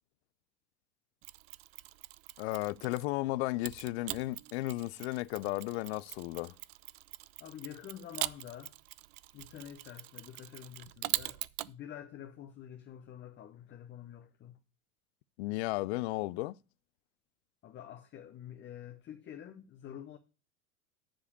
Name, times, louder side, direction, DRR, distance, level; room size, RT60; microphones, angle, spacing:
Mechanisms, 1.2-3.1 3.6-11.7, right 20 dB, 45° right, 0.4 m, -42 dB
voice 1, 2.4-6.5 15.4-16.6, left 19 dB, 50° left, 0.4 m, -34 dB
voice 2, 7.4-8.7 9.3-11.4 11.7-14.6 17.6-20.2, left 10 dB, 25° left, 0.7 m, -48 dB
10.0 x 4.9 x 6.5 m
hypercardioid pair, 95°, 44 cm